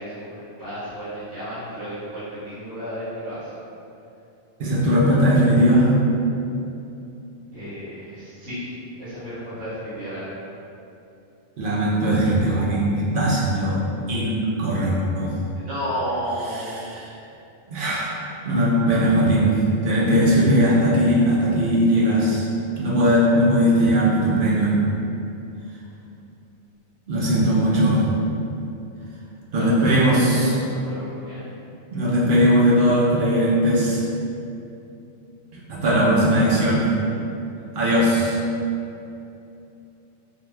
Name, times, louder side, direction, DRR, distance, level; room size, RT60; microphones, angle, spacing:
voice 1, 0.0-3.5 7.5-8.7 9.0-10.3 15.6-16.8 27.6-27.7 29.5-31.4, equal, 80° right, -12 dB, 1.4 m, -32 dB
voice 2, 4.6-5.9 11.6-13.8 14.1-15.3 16.5-17.1 17.7-18.2 18.4-22.5 22.8-24.8 27.1-28.0 29.5-30.5 31.9-34.0 35.7-36.8 37.7-38.4, equal, 55° right, -6 dB, 0.6 m, -19 dB
2.9 x 2.2 x 3.2 m, 2.8 s
omnidirectional pair, 1.4 m